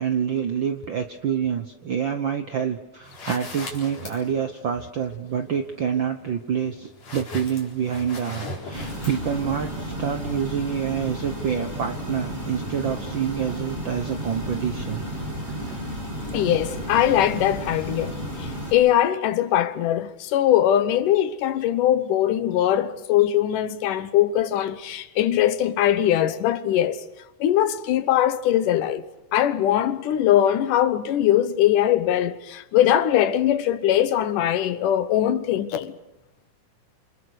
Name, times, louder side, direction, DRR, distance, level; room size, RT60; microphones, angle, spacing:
voice 1, 0.0-15.0 15.6-15.8 16.2-16.3, right 8 dB, 65° right, 1.1 m, -27 dB
sound 1, 3.0-9.7, left 1 dB, 55° left, 5.5 m, -40 dB
sound 2, 8.7-18.7, equal, 15° right, 7.4 m, -32 dB
voice 2, 16.3-27.0 27.4-29.1 29.3-35.9, left 11 dB, 85° left, 2.7 m, -21 dB
28.0 x 26.5 x 6.3 m
omnidirectional pair, 3.6 m